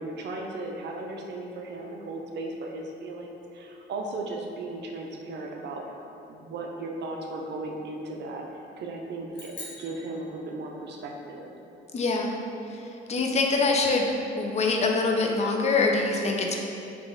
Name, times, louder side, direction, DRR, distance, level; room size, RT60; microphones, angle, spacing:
voice 1, 0.0-11.5, right 2 dB, 60° right, 1 dB, 0.5 m, -36 dB
sound 1, 9.3-11.0, left 2 dB, 65° left, 0.8 m, -44 dB
voice 2, 11.9-12.3 12.7-14.1 14.4-16.6, left 3 dB, 35° left, 1 dB, 0.4 m, -24 dB
3.1 x 2.4 x 3.7 m, 2.8 s
cardioid pair, 90°, 20 cm